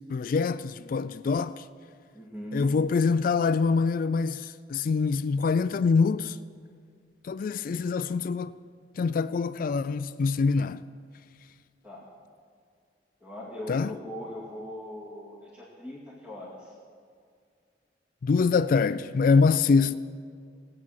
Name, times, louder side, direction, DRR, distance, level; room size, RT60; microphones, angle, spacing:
voice 1, 0.1-1.6 2.5-6.4 7.2-8.5 9.0-10.8 13.7-13.9 18.2-19.9, left 4 dB, 50° left, 0.3 m, -24 dB
voice 2, 2.1-2.8 11.8-12.1 13.2-16.7, equal, 10° right, 2.2 m, -40 dB
17.0 x 8.9 x 6.4 m
head